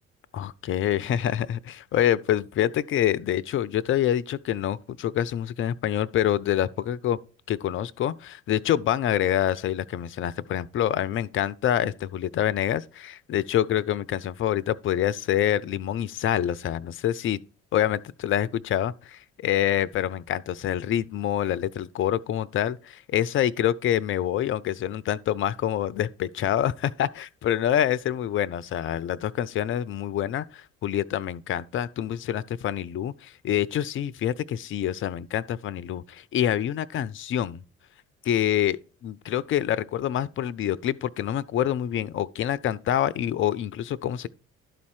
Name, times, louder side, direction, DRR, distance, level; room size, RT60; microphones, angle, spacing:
voice 1, 0.3-7.2 7.5-17.4 17.7-37.6 38.2-44.3, left 11 dB, 30° left, 0.5 m, -26 dB
12.0 x 4.2 x 4.5 m
figure-of-eight pair, 50°, 39 cm